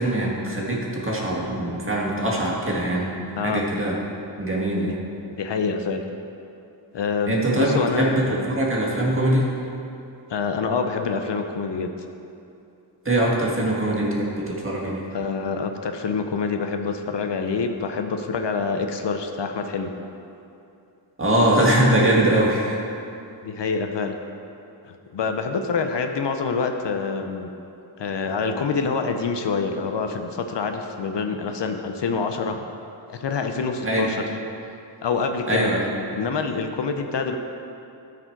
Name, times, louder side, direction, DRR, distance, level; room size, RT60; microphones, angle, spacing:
voice 1, 0.0-3.9 4.4-5.0 7.3-9.5 13.1-15.0 21.2-22.8 33.8-34.1 35.5-35.9, right 1 dB, 25° right, -4 dB, 1.8 m, -22 dB
voice 2, 5.3-6.0 6.9-8.5 10.3-11.9 15.1-19.9 23.4-24.2 24.8-27.5 28.0-32.6 33.1-34.2 35.0-35.7 36.1-37.4, left 5 dB, 65° left, 5 dB, 0.7 m, -26 dB
12.5 x 5.0 x 4.6 m, 2.7 s
wide cardioid pair, 85°, 46 cm